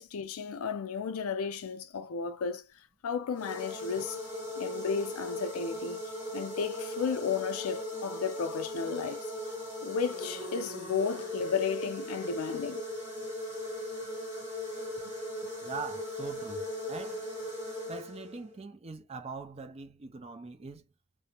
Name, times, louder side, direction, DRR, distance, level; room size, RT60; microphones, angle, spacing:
voice 1, 0.0-2.6 3.0-4.2 4.6-6.0 6.3-9.2 9.8-12.8, left 6 dB, 80° left, 0.4 m, -33 dB
sound 1, 3.3-18.5, left 1 dB, 10° right, 1.4 m, -38 dB
voice 2, 15.6-17.3 17.9-20.9, right 4 dB, 25° right, 0.3 m, -42 dB
2.5 x 2.0 x 2.8 m
head